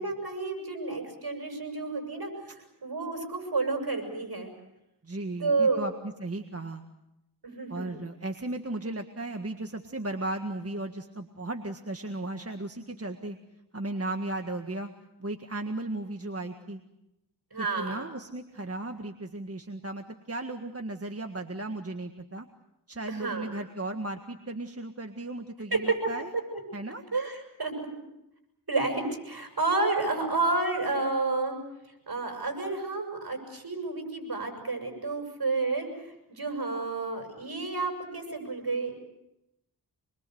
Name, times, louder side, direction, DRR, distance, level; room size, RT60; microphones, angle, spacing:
voice 1, 0.0-4.5 5.4-5.9 7.4-7.9 17.5-18.0 23.1-23.5 25.7-26.1 26.5-26.6 27.1-27.7 28.7-31.6 32.1-38.9, right 3 dB, 60° right, 4 dB, 7.4 m, -30 dB
voice 2, 5.0-6.8 7.7-13.4 13.7-14.9 15.2-16.8 17.6-22.5 22.9-26.3 26.7-27.0, right 2 dB, 35° right, 5 dB, 1.8 m, -36 dB
26.0 x 23.5 x 7.9 m, 0.87 s
wide cardioid pair, 50°, 41 cm